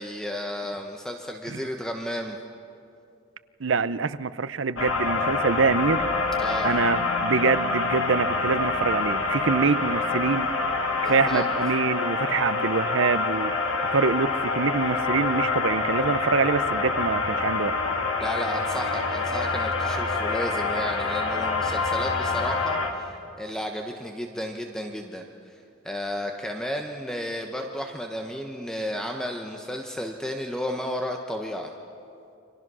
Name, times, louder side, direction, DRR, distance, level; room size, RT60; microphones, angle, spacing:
voice 1, 0.0-2.4 6.4-6.8 11.0-11.4 18.2-23.1 23.4-25.2 25.5-25.6 25.8-31.7, equal, 5° left, 2 dB, 1.1 m, -33 dB
voice 2, 3.6-6.0 6.6-10.5 11.0-13.5 13.9-17.8, right 4 dB, 75° right, 14 dB, 0.7 m, -25 dB
sound 1, 4.8-22.9, left 3 dB, 80° left, 2.3 m, -26 dB
29.5 x 25.0 x 6.3 m, 2.6 s
head